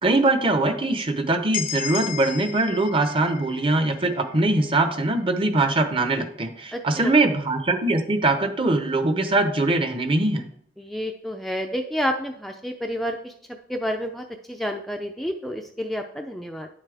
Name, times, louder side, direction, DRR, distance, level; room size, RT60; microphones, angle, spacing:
voice 1, 0.0-10.4, right 2 dB, 30° right, 8 dB, 0.9 m, -22 dB
sound 1, 1.5-5.4, left 10 dB, 50° left, 0.6 m, -35 dB
voice 2, 6.7-7.1 10.8-13.3 13.7-16.7, equal, ahead, 3 dB, 0.4 m, -29 dB
9.8 x 7.3 x 3.4 m, 0.67 s
head